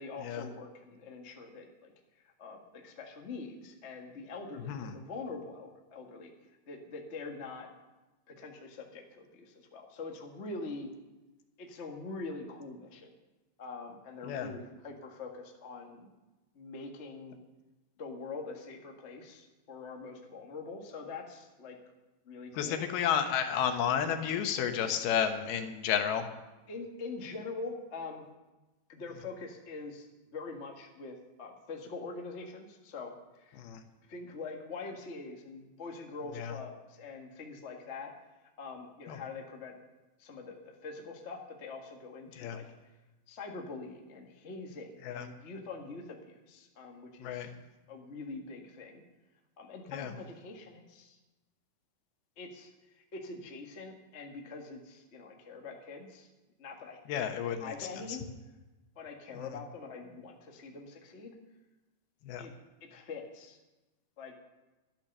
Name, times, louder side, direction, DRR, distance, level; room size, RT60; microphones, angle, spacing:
voice 1, 0.0-1.9 2.2-6.3 6.7-7.7 8.3-10.9 11.6-13.1 13.6-16.1 16.5-17.4 18.0-21.8 22.2-22.8 26.7-28.3 28.9-30.1 30.3-33.6 34.1-38.1 38.6-39.7 40.2-42.7 43.3-47.5 47.9-49.0 49.6-51.2 52.4-56.3 56.6-58.2 58.9-61.3 62.4-62.5 62.8-63.6 64.2-64.3, left 3 dB, 55° left, 1 dB, 0.7 m, -44 dB
voice 2, 14.2-14.5 22.5-26.3 33.6-33.8 36.3-36.5 39.1-39.2 42.4-42.6 45.0-45.3 47.2-47.5 49.9-50.1 57.1-58.2 59.3-59.5 62.2-62.4, left 8 dB, 85° left, 6 dB, 3.1 m, -32 dB
12.0 x 11.5 x 6.6 m, 1.1 s
omnidirectional pair, 4.3 m